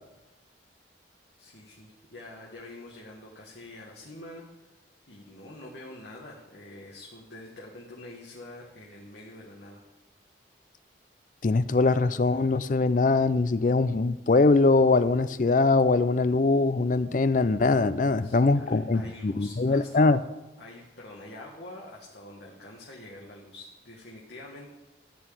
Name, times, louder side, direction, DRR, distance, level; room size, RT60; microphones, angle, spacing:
voice 1, 1.4-4.4 5.1-9.8 18.2-20.2 20.6-24.7, left 1 dB, 55° left, -4 dB, 1.7 m, -46 dB
voice 2, 11.4-20.2, left 3 dB, 40° left, 14 dB, 0.4 m, -22 dB
14.0 x 4.7 x 8.7 m, 1.0 s
head